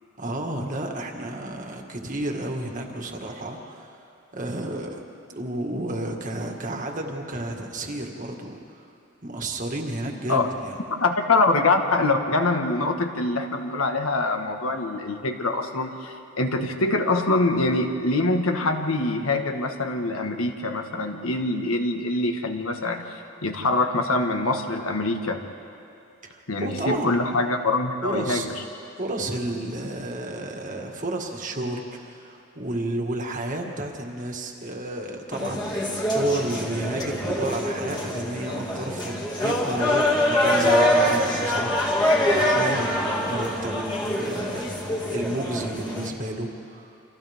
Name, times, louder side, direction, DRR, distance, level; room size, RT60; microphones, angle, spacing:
voice 1, 0.2-3.9 4.3-5.0 5.3-8.9 9.2-10.8 26.2-27.2 28.0-28.5 29.0-46.9, right 1 dB, 40° right, 2 dB, 1.9 m, -31 dB
voice 2, 11.0-25.4 26.5-28.5, left 2 dB, 85° left, 5 dB, 1.5 m, -24 dB
sound 1, 35.3-46.1, left 1 dB, 20° left, 2.3 m, -24 dB
29.5 x 26.0 x 3.6 m, 2.7 s
head